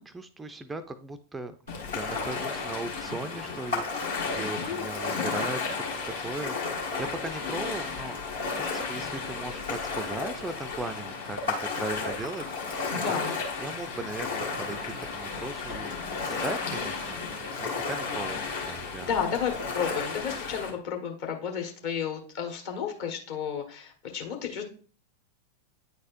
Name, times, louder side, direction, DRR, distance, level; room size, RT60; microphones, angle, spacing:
voice 1, 0.1-1.6 1.8-5.8 6.2-8.2 8.6-12.8 13.1-19.1, right 2 dB, 10° right, 10 dB, 0.4 m, -38 dB
Ocean, 1.7-20.7, left 4 dB, 65° left, 1.7 m, -33 dB
voice 2, 12.9-13.4 19.0-24.6, left 7 dB, 50° left, 2 dB, 1.3 m, -32 dB
9.4 x 4.2 x 2.5 m, 0.42 s
figure-of-eight pair, 90°, 0 cm